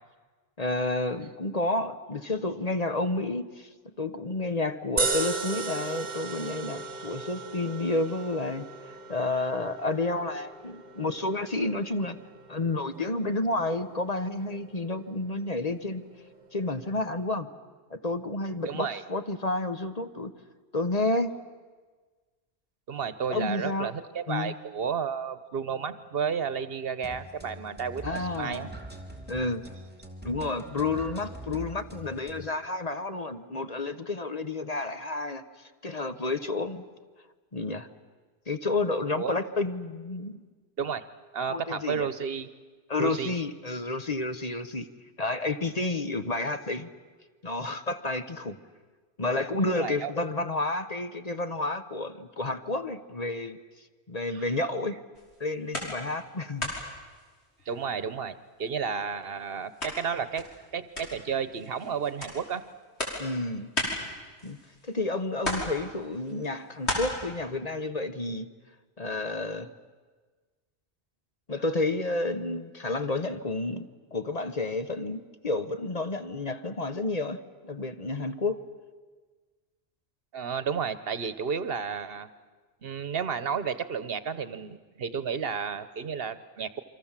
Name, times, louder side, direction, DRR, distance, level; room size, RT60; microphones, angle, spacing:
voice 1, 0.6-3.7 4.0-12.2 12.5-16.0 16.5-17.5 17.9-20.3 20.7-21.3 23.3-23.9 24.3-24.5 28.0-28.7 29.3-29.6 30.2-36.8 37.5-37.9 38.5-40.4 41.5-42.1 42.9-44.9 45.2-46.9 47.4-48.6 49.2-53.6 54.1-55.0 55.4-56.7 63.2-63.7 64.4-64.6 64.8-68.5 69.0-69.7 71.5-78.6, left 2 dB, 40° left, 9 dB, 1.1 m, -30 dB
sound 1, 5.0-17.3, right 3 dB, 45° right, 1.5 m, -37 dB
voice 2, 18.6-19.0 22.9-28.7 39.1-39.4 40.8-41.0 41.3-42.5 43.0-43.3 49.7-50.1 54.3-54.5 57.7-62.6 80.3-82.3 82.8-86.8, right 6 dB, 65° right, 13 dB, 1.1 m, -32 dB
sound 2, 27.0-32.4, right 1 dB, 10° right, 2.5 m, -43 dB
sound 3, 55.1-56.3 56.6-58.1 58.5-65.0 65.4-67.0, left 1 dB, 90° left, 5.7 m, -36 dB
28.0 x 24.5 x 7.4 m, 1.4 s
omnidirectional pair, 1.1 m